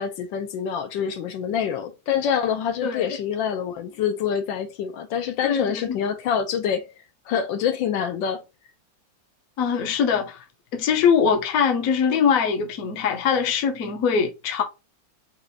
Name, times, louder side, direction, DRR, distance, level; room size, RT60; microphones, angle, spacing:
voice 1, 0.0-6.9 7.3-8.4, left 8 dB, 80° left, 1.3 m, -26 dB
voice 2, 5.4-6.0 9.6-10.4 10.7-14.6, left 6 dB, 55° left, 1.0 m, -22 dB
4.5 x 2.4 x 3.8 m
omnidirectional pair, 2.1 m